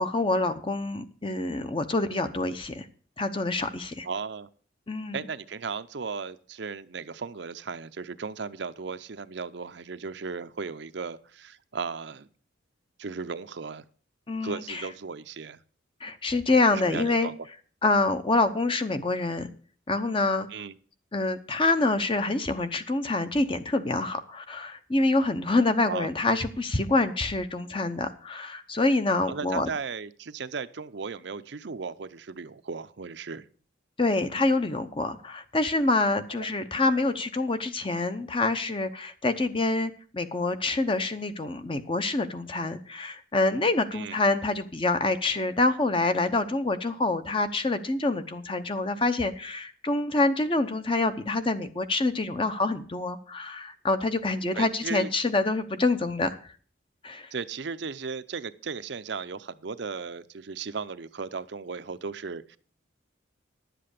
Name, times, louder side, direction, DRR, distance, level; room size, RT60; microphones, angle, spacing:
voice 1, 0.0-2.9 3.2-4.1 4.9-5.2 14.3-14.8 16.0-17.3 17.8-19.5 19.9-20.5 21.1-29.7 34.0-56.4 57.0-57.3, left 2 dB, 25° left, 0.8 m, -26 dB
voice 2, 4.0-4.5 5.1-12.3 13.0-13.9 14.4-15.6 16.7-17.4 20.5-20.7 25.9-26.1 29.3-33.5 36.3-36.5 43.9-44.2 54.5-55.1 57.3-62.6, right 5 dB, 60° right, 0.6 m, -36 dB
11.0 x 7.7 x 6.6 m
head